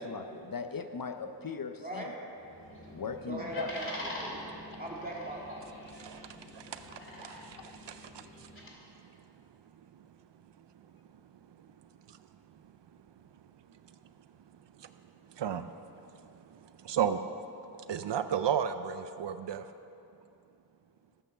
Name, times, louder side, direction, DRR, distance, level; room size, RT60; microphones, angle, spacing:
voice 1, 0.0-2.1 2.9-3.7, left 5 dB, 55° left, 8 dB, 0.6 m, -39 dB
voice 2, 1.8-2.1 3.3-4.5 4.8-5.6, right 1 dB, 20° right, -4 dB, 2.5 m, -39 dB
sound 1, 2.4-8.7, left 1 dB, 30° left, 2.5 m, -45 dB
voice 3, 6.0-8.5 9.0-9.1 9.9-10.1 10.7-10.9 11.6-11.7 12.1-12.2 13.7-14.0 14.8-14.9 15.2-17.2 17.9-19.7, right 8 dB, 80° right, 10 dB, 0.5 m, -35 dB
13.5 x 8.4 x 6.6 m, 2.8 s
wide cardioid pair, 80°, 42 cm